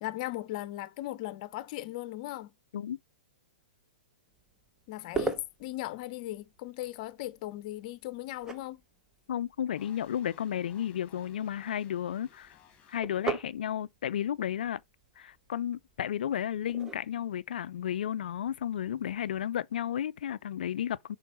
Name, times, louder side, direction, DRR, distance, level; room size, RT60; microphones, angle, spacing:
voice 1, 0.0-2.5 4.9-8.8, left 16 dB, 45° left, 0.7 m, -38 dB
sound 1, 4.3-19.4, right 4 dB, 10° right, 0.9 m, -43 dB
voice 2, 9.3-12.6 12.9-14.8 15.2-21.2, left 10 dB, 70° left, 0.3 m, -33 dB
sound 2, 9.8-13.0, left 9 dB, 25° left, 1.6 m, -58 dB
5.9 x 3.9 x 4.3 m
hypercardioid pair, 125°, 5 cm